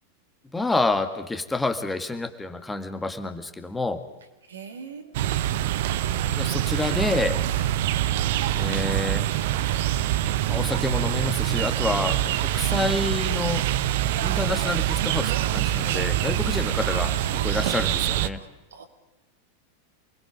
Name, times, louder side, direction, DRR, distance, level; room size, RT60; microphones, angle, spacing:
voice 1, 0.5-4.0 6.3-7.4 8.5-9.2 10.5-13.6 14.2-17.1 17.4-18.4, left 2 dB, 10° left, 8 dB, 1.7 m, -28 dB
voice 2, 4.5-5.1 12.7-13.0 16.4-17.8 18.4-18.9, right 5 dB, 65° right, 4 dB, 3.2 m, -40 dB
sound 1, 5.1-18.3, right 12 dB, 50° right, 0.9 m, -25 dB
28.0 x 21.0 x 5.3 m, 1.1 s
figure-of-eight pair, 90°, 0 cm